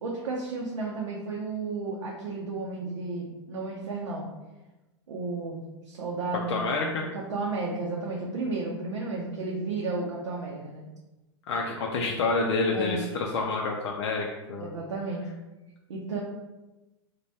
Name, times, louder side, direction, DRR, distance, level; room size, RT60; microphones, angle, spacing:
voice 1, 0.0-4.3 5.1-10.9 12.7-13.1 14.6-15.3 15.9-16.2, right 3 dB, 80° right, -2 dB, 0.5 m, -33 dB
voice 2, 6.5-7.1 11.5-14.7, left 3 dB, 70° left, 0 dB, 0.4 m, -28 dB
2.6 x 2.1 x 3.2 m, 1.0 s
hypercardioid pair, 110°, 15 cm